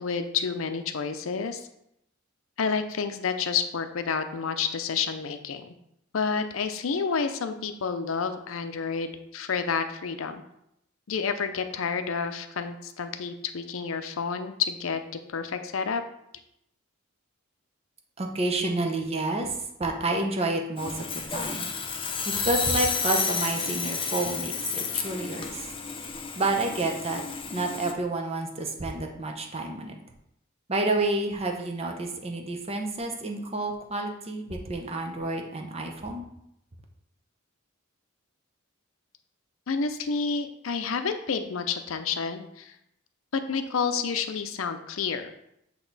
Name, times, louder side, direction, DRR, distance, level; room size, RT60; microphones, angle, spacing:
voice 1, 0.0-1.7 2.6-5.7 6.1-10.4 11.1-15.0 15.3-16.0 39.7-42.7 43.3-45.3, left 5 dB, 75° left, 8 dB, 0.5 m, -29 dB
voice 2, 18.2-21.7 22.2-25.7 26.3-27.2 27.5-29.9 30.7-36.3, right 2 dB, 30° right, 2 dB, 0.8 m, -29 dB
Sawing, 20.8-27.9, left 6 dB, 25° left, 0.5 m, -31 dB
7.9 x 3.0 x 4.0 m, 0.79 s
head